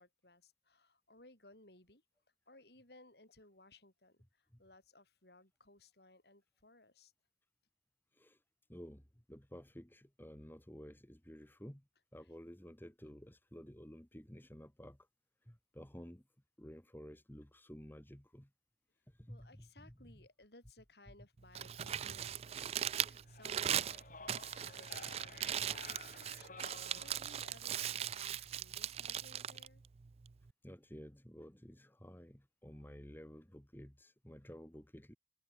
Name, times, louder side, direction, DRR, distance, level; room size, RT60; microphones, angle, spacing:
voice 1, 0.0-2.0 2.5-7.1 12.2-12.3 19.3-29.8, left 2 dB, 65° left, 7.2 m, -62 dB
voice 2, 8.7-9.0 9.3-11.8 12.1-15.0 15.5-16.2 16.6-18.5 19.2-19.9 30.6-35.2, equal, 10° left, 1.9 m, -53 dB
Crumpling crinkling, 21.4-30.5, right 10 dB, 35° right, 0.3 m, -39 dB
sound 1, 22.6-27.7, left 4 dB, 50° left, 5.0 m, -54 dB
head